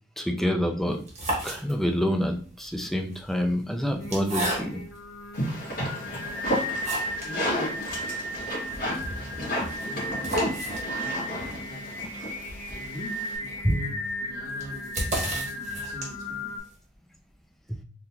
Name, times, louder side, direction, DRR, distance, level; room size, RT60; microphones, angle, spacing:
voice 1, 0.2-1.0 1.4-4.8 13.6-13.8 17.7-17.8, equal, ahead, 0.3 m, -27 dB
sound 1, 0.9-2.1 3.0-5.0 5.7-5.8 6.2-7.4 7.7-7.8 8.1-8.2 8.5-16.4, right 1 dB, 40° right, 1.1 m, -34 dB
Singing, 4.0-16.6, equal, 85° left, 0.8 m, -35 dB
sound 2, 5.3-13.4, equal, 55° left, 1.5 m, -32 dB
voice 2, 7.2-8.1 8.7-10.8 11.7-12.0 12.7-16.6, equal, 20° left, 0.9 m, -43 dB
3.7 x 2.8 x 2.2 m
head